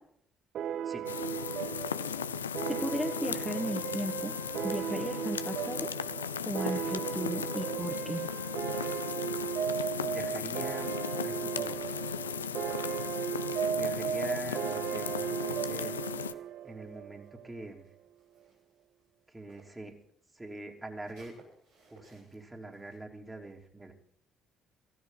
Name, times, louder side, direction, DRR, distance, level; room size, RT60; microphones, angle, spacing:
sound 1, 0.5-17.6, right 9 dB, 55° right, 0.5 m, -36 dB
sound 2, 1.1-16.3, left 8 dB, 85° left, 0.5 m, -37 dB
voice 1, 2.7-4.3 4.6-5.9 6.4-8.2, equal, 5° left, 0 dB, 1.8 m, -35 dB
voice 2, 10.0-10.9 11.2-11.8 13.7-16.0 16.3-17.9 19.3-19.9 20.3-21.3 21.9-23.9, right 2 dB, 15° right, 1 dB, 3.2 m, -44 dB
sound 3, 16.3-19.9 20.2-23.0, right 2 dB, 75° right, 6.4 m, -63 dB
16.0 x 15.0 x 4.1 m, 0.68 s
figure-of-eight pair, 50°, 0 cm